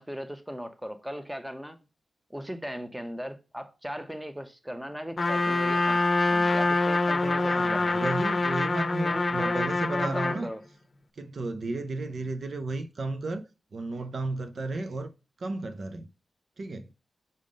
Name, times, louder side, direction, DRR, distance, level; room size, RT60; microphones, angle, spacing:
voice 1, 0.0-1.8 2.3-6.0 6.3-7.9 9.0-9.6 9.9-10.6, equal, 5° right, 1.0 m, -37 dB
Trumpet, 5.2-10.4, left 2 dB, 45° left, 0.7 m, -25 dB
voice 2, 7.2-10.5 11.1-15.1 15.4-16.1 16.6-16.9, right 2 dB, 60° right, 0.6 m, -34 dB
5.4 x 3.6 x 5.1 m
cardioid pair, 70°, 0 cm